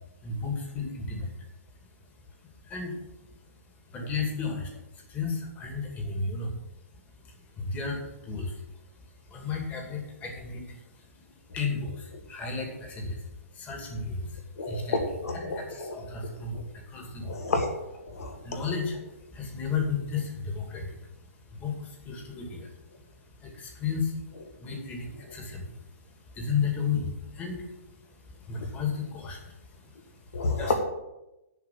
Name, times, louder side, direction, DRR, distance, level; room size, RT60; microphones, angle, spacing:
voice 1, 0.2-1.3 2.6-3.0 3.9-6.6 7.6-8.6 9.2-13.3 13.5-15.0 15.3-17.4 18.2-19.0 19.3-21.0 21.5-22.7 23.4-24.1 24.6-25.8 26.3-27.7 28.0-30.0 30.4-30.7, left 5 dB, 20° left, 1 dB, 2.4 m, -33 dB
voice 2, 14.6-16.0 16.5-16.6 17.2-17.7 18.1-18.6 30.3-30.7, left 3 dB, 75° left, 4 dB, 1.9 m, -30 dB
11.0 x 5.0 x 8.4 m, 0.94 s
hypercardioid pair, 140°, 8 cm